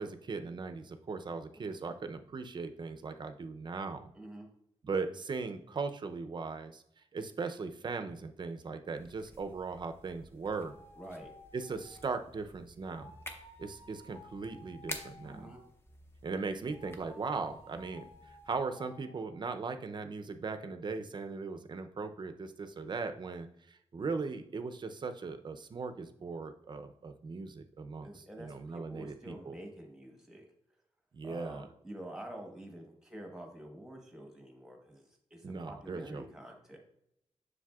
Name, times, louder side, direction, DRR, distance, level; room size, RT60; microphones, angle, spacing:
voice 1, 0.0-4.1 4.8-6.8 7.1-10.7 11.5-13.1 13.6-15.5 16.2-29.6 31.1-31.7 35.4-36.3, right 4 dB, 40° right, 8 dB, 0.5 m, -39 dB
voice 2, 4.1-4.5 11.0-11.3 15.2-15.6 28.0-30.4 31.2-35.0 35.3-36.8, right 1 dB, 5° right, 2 dB, 1.2 m, -47 dB
sound 1, 9.0-18.6, left 1 dB, 20° left, 0.7 m, -51 dB
sound 2, 10.5-12.2 12.9-15.8 16.7-19.4, left 2 dB, 65° left, 2.7 m, -56 dB
7.4 x 6.2 x 2.3 m, 0.75 s
wide cardioid pair, 165°, 12 cm